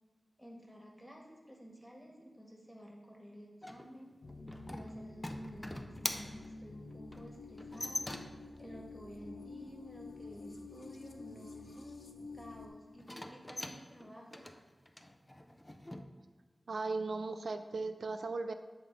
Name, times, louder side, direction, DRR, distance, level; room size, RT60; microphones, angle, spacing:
voice 1, 0.4-4.2 4.7-12.0 12.3-14.4, equal, ahead, -2 dB, 1.8 m, -53 dB
sound 1, 3.6-8.6 13.0-16.0, left 1 dB, 15° left, 0.6 m, -43 dB
sound 2, 4.2-12.7, left 3 dB, 55° left, 0.7 m, -49 dB
voice 2, 16.7-18.5, right 3 dB, 85° right, 9 dB, 0.4 m, -37 dB
8.6 x 3.6 x 5.4 m, 1.4 s
wide cardioid pair, 70°, 0 cm